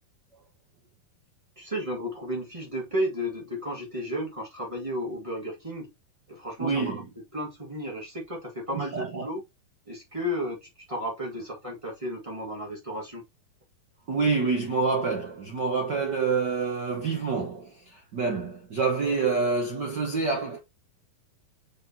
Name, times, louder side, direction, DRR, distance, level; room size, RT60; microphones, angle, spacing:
voice 1, 1.6-5.9 6.3-7.0 7.3-9.4 9.9-13.2, equal, 30° right, 0.6 m, -33 dB
voice 2, 6.6-7.0 8.7-9.3 14.1-20.6, right 4 dB, 90° right, 0.9 m, -27 dB
6.4 x 5.9 x 2.8 m
omnidirectional pair, 3.9 m